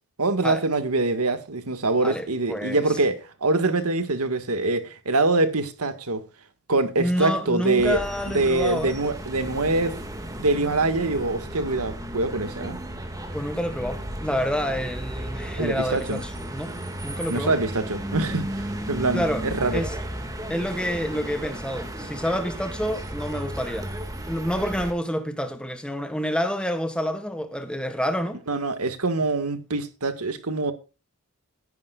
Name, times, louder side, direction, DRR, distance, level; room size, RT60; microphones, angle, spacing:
voice 1, 0.2-6.2 6.7-8.0 8.3-10.0 10.4-12.8 15.6-16.2 17.3-19.8 28.5-30.7, right 2 dB, 85° right, 1.9 m, -24 dB
voice 2, 2.0-2.9 7.0-9.0 13.3-16.7 17.0-17.5 19.1-19.4 19.7-19.9 20.5-23.9 24.3-28.4, equal, 5° left, 1.6 m, -28 dB
sound 1, 7.8-24.9, right 1 dB, 15° right, 2.0 m, -34 dB
17.5 x 10.5 x 2.4 m
head